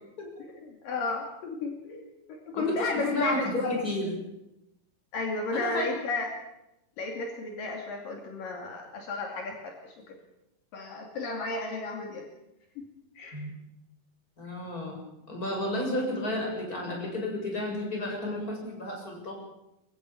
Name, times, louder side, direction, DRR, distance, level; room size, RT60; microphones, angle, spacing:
voice 1, 0.2-3.8 5.1-6.3 7.0-10.2 10.7-12.3 12.8-12.9 13.2-13.4, left 3 dB, 70° left, 2 dB, 4.3 m, -33 dB
voice 2, 2.5-4.1 5.5-5.9 13.3-13.5 14.4-15.0 15.3-19.3, left 1 dB, 25° left, 0 dB, 7.6 m, -32 dB
24.5 x 16.0 x 8.7 m, 0.87 s
omnidirectional pair, 4.1 m